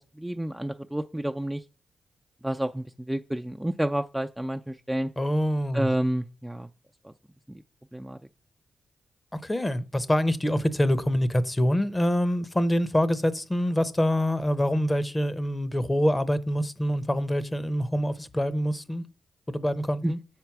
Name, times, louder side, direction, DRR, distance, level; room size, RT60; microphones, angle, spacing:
voice 1, 0.0-1.6 2.4-5.1 5.7-6.7 7.0-7.1 7.5-7.6 7.9-8.2 20.0-20.1, right 1 dB, 5° right, 0.4 m, -30 dB
voice 2, 5.2-5.9 9.3-19.0 19.5-20.2, equal, 20° left, 0.7 m, -25 dB
6.6 x 4.6 x 5.9 m
cardioid pair, 60°, 0 cm